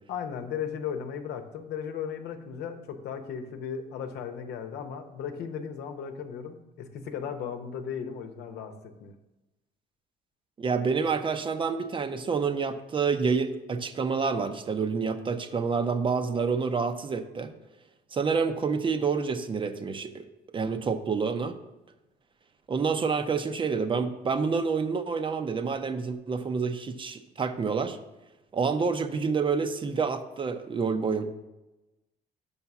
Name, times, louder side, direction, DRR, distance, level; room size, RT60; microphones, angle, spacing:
voice 1, 0.1-9.1, left 7 dB, 75° left, 6 dB, 0.9 m, -36 dB
voice 2, 10.6-17.5 18.1-20.3 20.5-21.6 22.7-28.0 28.5-31.3, right 5 dB, 30° right, 9 dB, 0.6 m, -28 dB
5.7 x 5.5 x 5.9 m, 1.0 s
cardioid pair, 110°, 17 cm